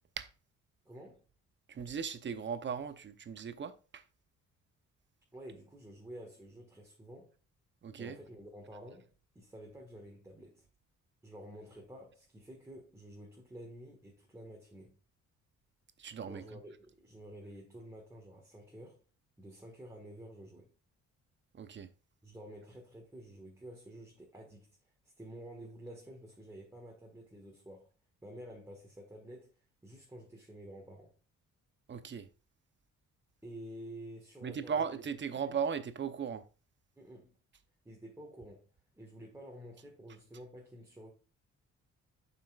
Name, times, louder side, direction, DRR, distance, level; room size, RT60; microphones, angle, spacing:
voice 1, 0.8-1.2 5.3-7.3 8.0-9.1 9.3-10.6 11.2-15.0 16.3-19.0 19.4-20.7 22.2-24.8 25.2-27.9 28.2-29.6 29.8-31.1 33.4-35.4 37.0-37.4 37.8-38.7 39.0-41.1, right 1 dB, 10° right, 1.6 m, -50 dB
voice 2, 1.7-4.0 7.8-8.2 16.0-16.4 21.5-21.9 31.9-32.3 34.4-36.4, right 6 dB, 40° right, 0.7 m, -37 dB
7.3 x 5.6 x 2.4 m
cardioid pair, 90°, 30 cm